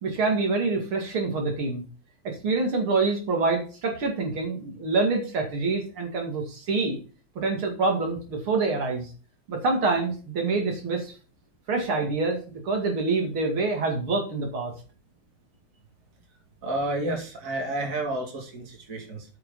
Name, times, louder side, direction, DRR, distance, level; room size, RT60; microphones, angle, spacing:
voice 1, 0.0-1.8 2.2-7.0 7.4-9.1 9.5-11.1 11.7-14.7, right 3 dB, 70° right, 2 dB, 3.2 m, -26 dB
voice 2, 16.6-19.3, right 1 dB, 40° right, 1 dB, 2.9 m, -30 dB
8.8 x 6.5 x 5.4 m, 0.36 s
omnidirectional pair, 2.4 m